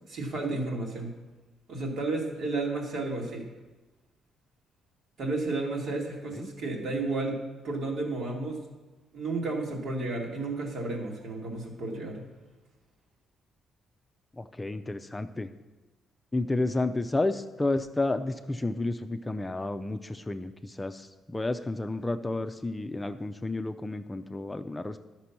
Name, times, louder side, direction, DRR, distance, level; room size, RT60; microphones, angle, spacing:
voice 1, 0.1-1.1 1.7-3.5 5.2-8.6 9.1-12.2, right 2 dB, 70° right, -1 dB, 2.3 m, -32 dB
voice 2, 14.4-15.5 16.3-25.0, left 2 dB, 15° left, 8 dB, 0.5 m, -31 dB
11.5 x 6.1 x 5.9 m, 1.1 s
cardioid pair, 90°, 0 cm